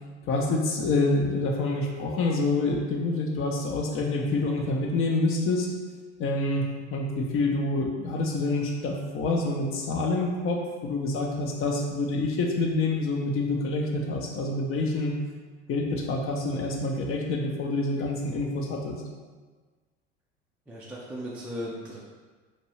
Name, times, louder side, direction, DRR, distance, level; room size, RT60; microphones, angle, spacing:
voice 1, 0.3-5.7 6.2-15.1 15.7-19.0, left 2 dB, 35° left, 1 dB, 0.6 m, -27 dB
voice 2, 20.7-22.0, equal, 5° right, -6 dB, 0.3 m, -36 dB
2.8 x 2.6 x 3.1 m, 1.4 s
figure-of-eight pair, 65°, 36 cm